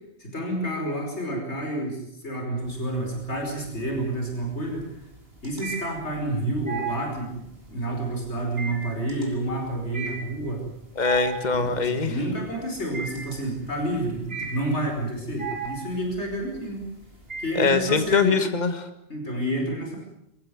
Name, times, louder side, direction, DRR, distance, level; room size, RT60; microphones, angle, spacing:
voice 1, 0.2-5.0 5.4-7.4 7.7-10.6 11.5-16.9 17.4-18.4 19.1-20.0, right 1 dB, 80° left, 2 dB, 5.6 m, -29 dB
sound 1, 2.7-3.3 3.7-18.1, right 5 dB, 60° right, 4.4 m, -36 dB
voice 2, 11.0-12.1 17.6-18.9, left 4 dB, 40° left, 9 dB, 1.8 m, -23 dB
26.5 x 15.5 x 9.5 m, 0.78 s
omnidirectional pair, 1.1 m